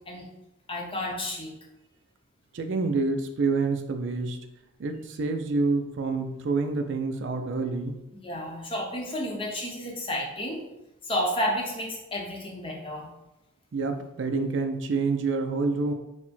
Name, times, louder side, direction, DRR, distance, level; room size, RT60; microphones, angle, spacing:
voice 1, 0.7-1.5 8.2-10.6 11.0-13.1, left 1 dB, 25° left, -1 dB, 0.7 m, -31 dB
voice 2, 2.5-4.4 4.8-7.9 13.7-15.9, right 3 dB, 60° right, 6 dB, 0.4 m, -27 dB
4.3 x 2.1 x 4.2 m, 0.94 s
head